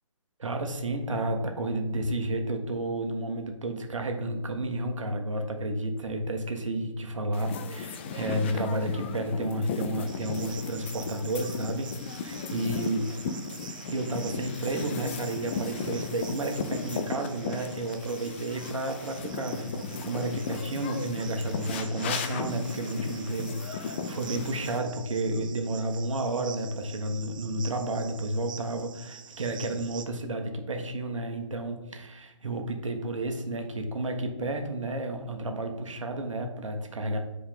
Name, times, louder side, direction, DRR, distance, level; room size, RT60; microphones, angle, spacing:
voice 1, 0.4-11.9 12.2-13.1 13.9-37.2, right 1 dB, 70° right, 4 dB, 1.5 m, -31 dB
sound 1, 7.3-24.8, left 5 dB, 20° left, 0.4 m, -36 dB
Cricket, 10.1-30.0, right 7 dB, 40° right, 0.5 m, -47 dB
8.9 x 4.7 x 3.7 m, 1.0 s
figure-of-eight pair, 145°, 17 cm